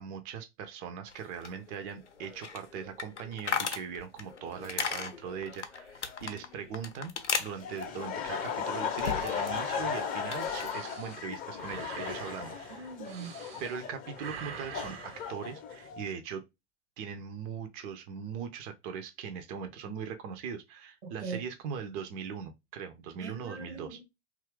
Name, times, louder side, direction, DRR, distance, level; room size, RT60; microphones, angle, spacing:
voice 1, 0.0-12.6 13.6-16.4 17.0-24.0, right 7 dB, 25° right, 0.4 m, -40 dB
sound 1, 1.1-9.6 9.9-10.7, left 5 dB, 85° left, 0.6 m, -38 dB
Laughter, 7.6-16.1, left 7 dB, 25° left, 0.5 m, -36 dB
sound 2, 9.1-13.9 14.1-15.3, right 8 dB, 60° right, 0.7 m, -46 dB
voice 2, 12.7-13.3 21.0-21.4 23.2-24.0, right 4 dB, 80° right, 1.2 m, -41 dB
2.8 x 2.4 x 3.1 m
figure-of-eight pair, 90°, 34 cm